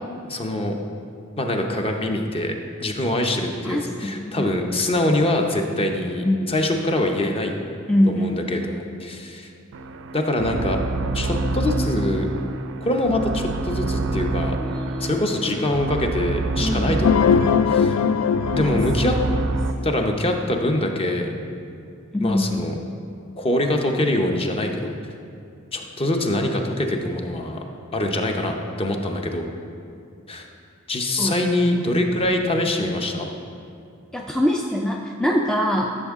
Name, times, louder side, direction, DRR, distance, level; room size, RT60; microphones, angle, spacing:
voice 1, 0.3-0.8 1.4-2.5 2.8-7.5 8.1-9.5 10.1-10.8 11.1-12.3 12.8-14.6 15.0-17.9 18.5-19.2 19.8-21.3 22.2-22.8 23.4-24.9 25.7-27.6 27.9-29.5 30.3-30.4 30.9-33.3, left 1 dB, 25° left, 3 dB, 0.7 m, -24 dB
voice 2, 3.6-4.5 6.2-6.4 7.9-8.6 14.6-15.6 16.6-17.0 18.5-18.8 19.8-19.9 22.1-22.6 31.2-31.4 31.9-32.0 34.1-35.9, left 1 dB, 5° left, 0 dB, 0.3 m, -24 dB
sound 1, 9.7-19.7, right 3 dB, 65° right, 0.4 m, -27 dB
sound 2, 17.0-19.8, left 7 dB, 90° left, 0.3 m, -20 dB
12.0 x 6.3 x 3.6 m, 2.5 s
head